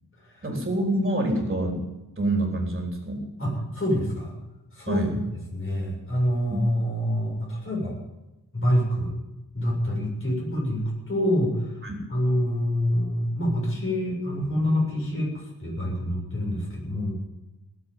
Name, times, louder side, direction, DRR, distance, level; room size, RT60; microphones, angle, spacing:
voice 1, 0.4-1.8 2.2-3.2 4.9-5.1 6.5-6.6 11.8-12.0, right 1 dB, 25° right, 1 dB, 3.8 m, -26 dB
voice 2, 3.4-4.3 4.7-5.1 5.5-7.9 8.5-9.1 9.5-11.8 12.1-17.1, equal, 35° left, -3 dB, 7.2 m, -26 dB
19.0 x 7.8 x 9.4 m, 0.99 s
wide cardioid pair, 130°, 38 cm